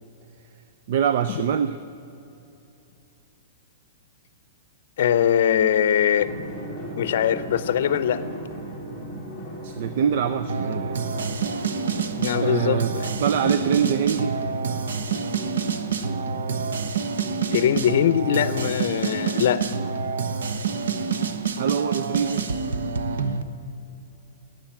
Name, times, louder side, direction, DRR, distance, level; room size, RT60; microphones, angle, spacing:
voice 1, 0.9-1.8 9.6-11.0 12.4-12.9 13.2-14.4 21.6-22.5, right 8 dB, 45° right, 11 dB, 0.5 m, -24 dB
voice 2, 5.0-6.3 7.0-8.2 12.2-13.1 17.5-19.6, left 9 dB, 55° left, 14 dB, 0.7 m, -21 dB
Drum, 6.2-17.2, right 1 dB, ahead, 2.7 m, -38 dB
sound 1, 10.5-23.4, right 5 dB, 85° right, 1.0 m, -27 dB
13.0 x 9.0 x 9.0 m, 2.8 s
hypercardioid pair, 170°, 0 cm